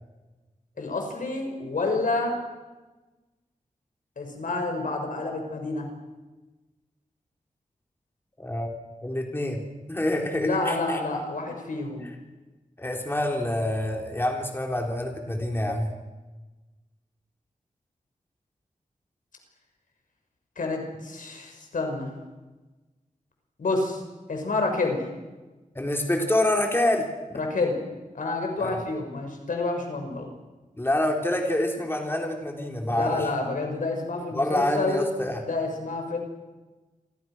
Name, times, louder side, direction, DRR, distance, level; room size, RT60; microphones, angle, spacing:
voice 1, 0.8-2.4 4.2-5.9 10.4-12.1 20.6-22.1 23.6-24.0 24.3-25.0 27.3-27.8 28.1-30.3 32.9-35.1 35.4-36.2, left 3 dB, 85° left, 3 dB, 5.9 m, -28 dB
voice 2, 8.4-8.7 9.0-9.6 9.9-11.0 12.8-15.9 25.7-27.4 28.6-28.8 30.8-33.2 34.3-35.4, left 1 dB, 15° left, 1 dB, 4.0 m, -27 dB
29.0 x 24.0 x 6.3 m, 1.2 s
wide cardioid pair, 95°, 13 cm